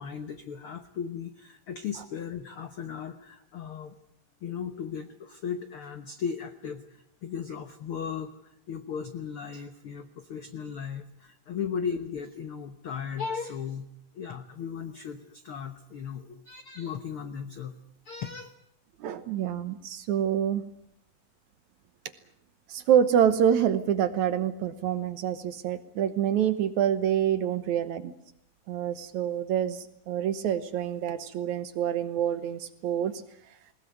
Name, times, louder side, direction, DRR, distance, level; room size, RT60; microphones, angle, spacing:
voice 1, 0.0-3.9 4.4-13.9 14.1-17.7 18.0-18.5, left 7 dB, 75° left, 9 dB, 1.2 m, -36 dB
voice 2, 19.0-20.6 22.7-28.1 28.7-33.1, right 9 dB, 65° right, 12 dB, 2.1 m, -26 dB
20.0 x 20.0 x 9.3 m, 0.72 s
omnidirectional pair, 4.1 m